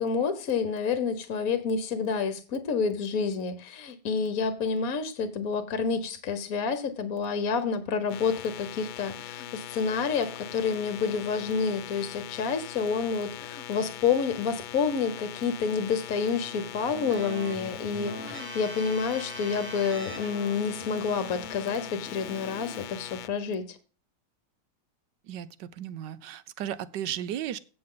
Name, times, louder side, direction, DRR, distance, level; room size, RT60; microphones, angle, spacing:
voice 1, 0.0-23.8, left 5 dB, 55° left, 1.3 m, -29 dB
sound 1, 8.1-23.3, left 13 dB, 85° left, 1.4 m, -41 dB
Keyboard (musical), 16.4-22.9, equal, 5° right, 1.1 m, -42 dB
voice 2, 25.2-27.6, right 10 dB, 70° right, 1.3 m, -35 dB
16.0 x 6.7 x 3.8 m
omnidirectional pair, 2.1 m